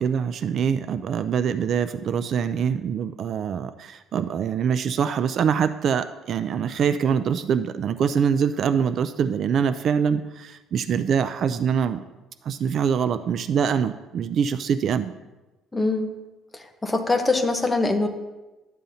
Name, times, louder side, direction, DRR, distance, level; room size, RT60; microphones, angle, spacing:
voice 1, 0.0-12.0 12.4-15.1, right 7 dB, 45° right, 11 dB, 0.4 m, -24 dB
voice 2, 15.7-16.1 16.5-18.1, left 3 dB, 10° left, 4 dB, 0.9 m, -23 dB
13.0 x 9.0 x 2.7 m, 1.1 s
cardioid pair, 140°, 0 cm